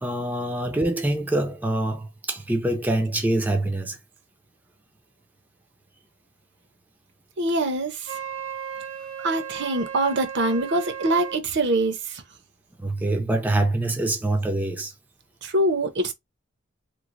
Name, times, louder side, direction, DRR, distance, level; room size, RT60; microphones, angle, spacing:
voice 1, 0.0-4.0 12.8-14.9, right 1 dB, 10° right, 0.5 m, -25 dB
voice 2, 7.4-8.1 9.2-12.2 15.4-16.1, right 2 dB, 60° right, 0.7 m, -24 dB
Wind instrument woodwind instrument, 8.0-11.4, right 8 dB, 85° right, 0.9 m, -35 dB
3.1 x 2.1 x 3.7 m
head